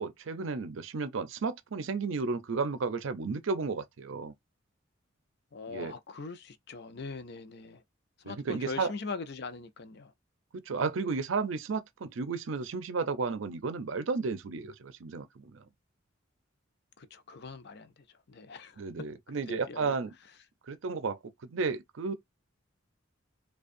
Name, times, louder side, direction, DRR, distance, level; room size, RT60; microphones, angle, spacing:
voice 1, 0.0-4.3 5.7-5.9 8.2-8.9 10.5-15.6 18.8-20.1 20.7-22.1, right 4 dB, 70° right, 0.5 m, -33 dB
voice 2, 5.5-7.8 8.3-10.1 17.0-17.9 18.3-18.8 19.5-19.9, left 4 dB, 55° left, 0.5 m, -41 dB
5.0 x 2.3 x 2.6 m
head